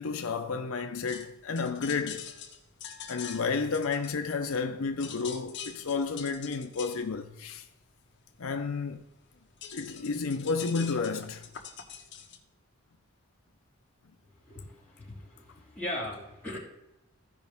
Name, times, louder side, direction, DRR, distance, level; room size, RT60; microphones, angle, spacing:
voice 1, 0.0-2.3 3.1-7.7 8.4-9.0 9.7-11.5, left 4 dB, 70° left, 0.6 m, -31 dB
sound 1, 1.1-4.6 4.9-12.4, left 7 dB, 50° left, 1.4 m, -45 dB
voice 2, 14.4-16.6, left 1 dB, 5° left, 3.0 m, -39 dB
15.5 x 5.3 x 3.5 m
head